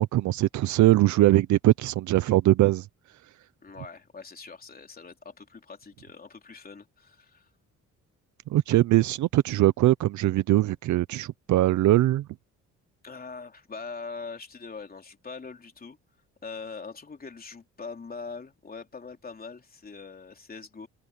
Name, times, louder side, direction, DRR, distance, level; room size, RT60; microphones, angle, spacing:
voice 1, 0.0-2.9 8.5-12.2, right 15 dB, 75° right, 0.6 m, -21 dB
voice 2, 3.6-7.5 13.0-16.0 16.4-20.9, left 4 dB, 30° left, 3.5 m, -42 dB
open air
cardioid pair, 90°, 30 cm